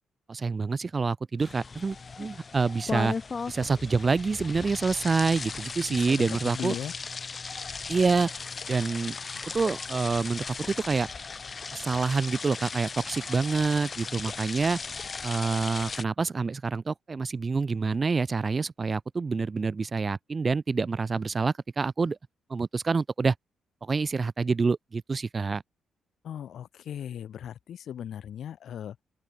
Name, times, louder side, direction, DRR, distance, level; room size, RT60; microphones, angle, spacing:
voice 1, 0.3-3.1 3.5-6.7 7.9-8.3 8.7-9.2 9.5-11.1 11.7-14.8 15.2-22.2 22.5-23.3 23.8-25.6, right 4 dB, 35° right, 0.7 m, -27 dB
sound 1, 1.4-16.0, left 4 dB, 40° left, 0.5 m, -37 dB
voice 2, 5.9-6.9 26.2-29.0, left 9 dB, 70° left, 1.7 m, -38 dB
open air
cardioid pair, 80°, 0 cm